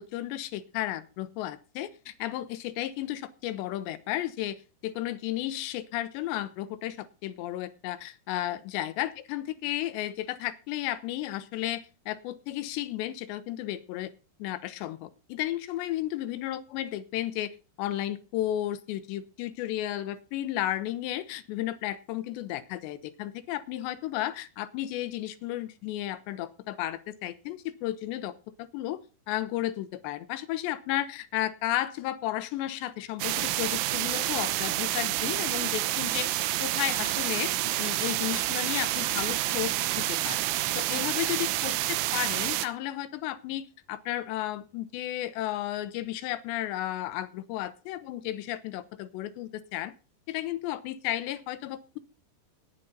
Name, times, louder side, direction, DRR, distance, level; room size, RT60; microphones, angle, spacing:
voice 1, 0.0-14.1 14.4-29.0 29.3-36.3 36.6-37.5 37.8-40.4 40.8-49.9 50.3-52.0, left 14 dB, 80° left, 13 dB, 2.7 m, -33 dB
sound 1, 33.2-42.7, right 15 dB, 90° right, 3.4 m, -29 dB
18.5 x 9.2 x 3.9 m, 0.32 s
omnidirectional pair, 5.6 m